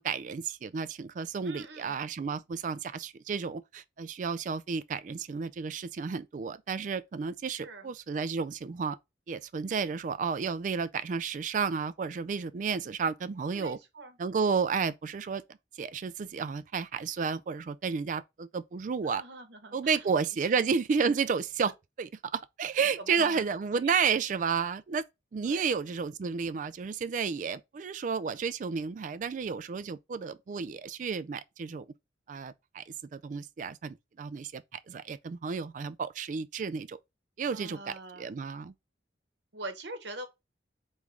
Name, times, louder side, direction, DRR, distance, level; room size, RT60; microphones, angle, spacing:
voice 1, 0.0-9.0 9.3-13.8 14.2-15.4 15.8-19.2 19.7-25.0 25.3-31.9 32.3-37.0 37.4-38.7, right 5 dB, 45° right, 0.3 m, -32 dB
voice 2, 1.4-2.0 7.6-7.9 13.5-14.2 19.0-20.0 23.1-23.4 23.7-23.9 25.5-25.7 37.5-38.3 39.5-40.2, right 2 dB, 70° right, 0.9 m, -43 dB
3.4 x 3.1 x 3.6 m
head